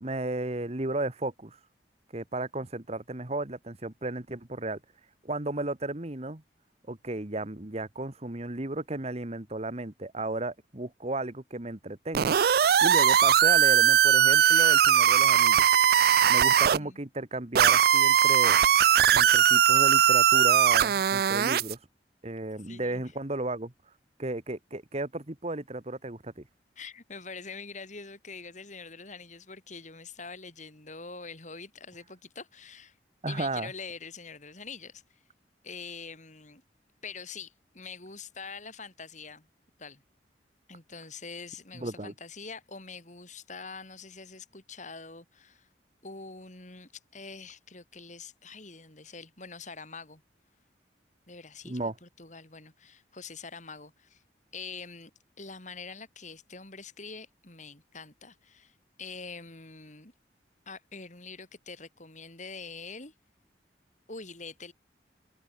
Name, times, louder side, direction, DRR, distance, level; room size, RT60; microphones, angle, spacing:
voice 1, 0.0-1.6 2.1-4.8 5.2-6.4 6.9-12.4 12.8-15.7 16.3-18.6 19.1-21.8 22.2-23.7 24.2-26.4 33.2-33.7 41.7-42.1 51.6-51.9, right 2 dB, 35° right, 1.6 m, -34 dB
sound 1, 12.1-16.8 17.6-21.7, right 9 dB, 60° right, 0.4 m, -20 dB
voice 2, 22.6-23.0 26.8-33.0 33.3-35.2 35.6-36.6 37.0-39.5 39.8-40.0 40.7-45.7 46.0-50.2 51.3-54.2 54.5-55.1 55.4-60.1 60.7-63.1 64.1-64.7, left 4 dB, 45° left, 5.5 m, -44 dB
head